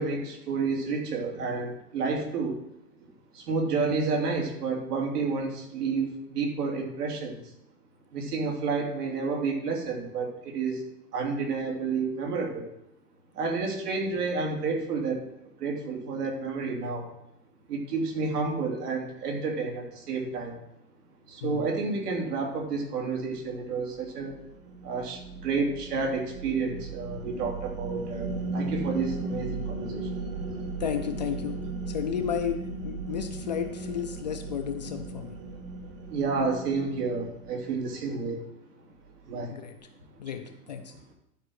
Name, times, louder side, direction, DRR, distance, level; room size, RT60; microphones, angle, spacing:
voice 1, 0.0-2.6 3.3-7.4 8.1-10.8 11.1-12.7 13.3-15.2 15.6-17.1 17.7-20.6 21.3-24.4 24.8-30.1 36.1-38.4 39.2-39.6, right 4 dB, 75° right, 0 dB, 3.3 m, -30 dB
sound 1, 23.4-37.9, right 3 dB, 55° right, 2.4 m, -37 dB
voice 2, 30.8-31.6 31.9-35.4 39.5-39.7 40.2-40.9, left 8 dB, 30° left, 5 dB, 0.4 m, -32 dB
11.5 x 4.8 x 6.3 m, 0.82 s
supercardioid pair, 165°, 46 cm